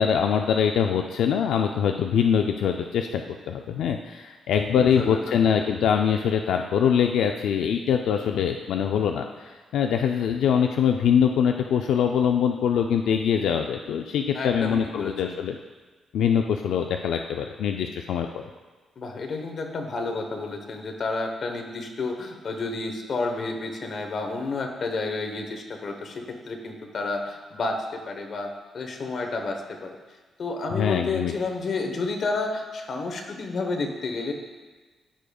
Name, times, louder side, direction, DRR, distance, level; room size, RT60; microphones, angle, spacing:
voice 1, 0.0-15.6 16.1-18.4 30.7-31.3, left 8 dB, 85° left, 4 dB, 0.3 m, -23 dB
voice 2, 4.7-5.3 14.3-15.3 19.0-30.0 30.4-34.3, left 3 dB, 50° left, 3 dB, 1.0 m, -30 dB
14.0 x 5.0 x 2.3 m, 1.3 s
cardioid pair, 140°, 0 cm